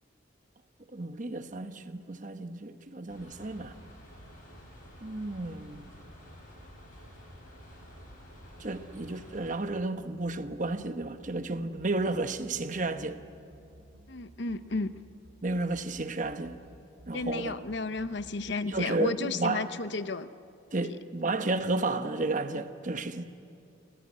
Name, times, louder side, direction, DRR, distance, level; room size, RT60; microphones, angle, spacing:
voice 1, 0.9-3.8 5.0-5.9 8.6-13.2 15.4-16.6 17.1-17.6 18.7-19.7 20.7-23.3, right 2 dB, 40° right, 1.1 m, -32 dB
sound 1, 3.1-9.6, equal, 40° left, 7.5 m, -51 dB
sound 2, 3.3-18.8, right 1 dB, 80° right, 3.8 m, -55 dB
voice 2, 14.1-14.9 17.1-20.3, left 3 dB, 60° left, 0.8 m, -33 dB
28.5 x 15.5 x 9.8 m
head